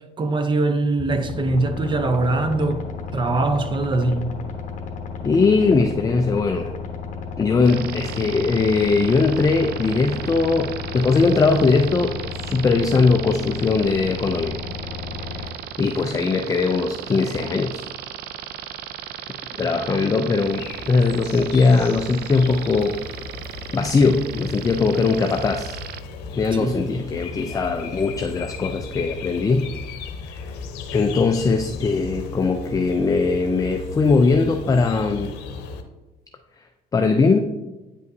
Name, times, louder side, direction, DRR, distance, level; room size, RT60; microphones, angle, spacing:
voice 1, 0.2-2.8 3.1-4.3 26.5-26.8, right 2 dB, 30° right, 0.7 m, -22 dB
sound 1, 1.0-15.5, left 5 dB, 50° left, 1.1 m, -33 dB
voice 2, 5.2-6.7 7.4-14.6 15.3-15.5 15.8-17.8 19.5-23.0 23.7-25.8 26.3-29.7 30.3-30.5 30.9-35.3 36.9-37.5, left 4 dB, 20° left, 0.4 m, -20 dB
sound 2, 7.6-26.0, right 11 dB, 70° right, 0.4 m, -36 dB
sound 3, 20.3-35.8, left 4 dB, 90° left, 0.8 m, -36 dB
9.2 x 5.3 x 2.7 m
cardioid pair, 110°, 17 cm